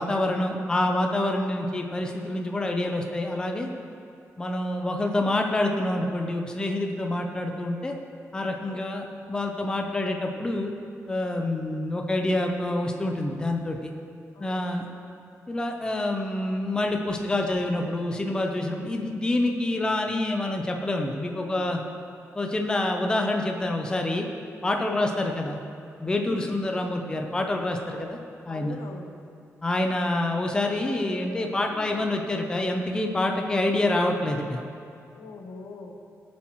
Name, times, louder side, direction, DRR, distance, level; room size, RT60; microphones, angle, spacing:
voice 1, 0.0-3.7 4.4-7.9 8.3-10.7 11.1-13.9 14.4-14.9 15.5-21.8 22.3-24.3 24.6-25.6 26.0-28.2 28.5-28.8 29.6-34.6, left 1 dB, 15° left, 2 dB, 0.6 m, -27 dB
voice 2, 14.3-15.0 21.4-21.8 24.8-25.5 26.2-26.6 28.5-29.2 31.7-32.0 35.1-36.0, left 3 dB, 75° left, 3 dB, 1.0 m, -43 dB
17.5 x 7.3 x 3.1 m, 2.5 s
wide cardioid pair, 170°, 5 cm